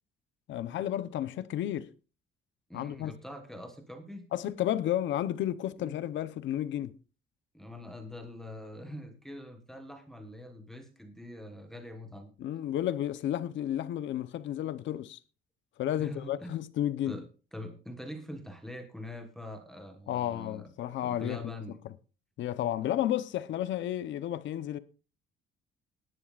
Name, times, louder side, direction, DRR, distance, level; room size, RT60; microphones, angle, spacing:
voice 1, 0.5-1.9 2.7-3.1 4.3-6.9 12.4-15.2 15.8-17.2 20.1-21.5 22.4-24.8, left 12 dB, 60° left, 0.9 m, -32 dB
voice 2, 2.7-4.3 5.8-6.0 7.5-12.3 16.0-16.6 17.1-20.7 21.0-21.8, left 1 dB, ahead, 1.3 m, -44 dB
19.0 x 11.0 x 2.5 m
cardioid pair, 170°, 21 cm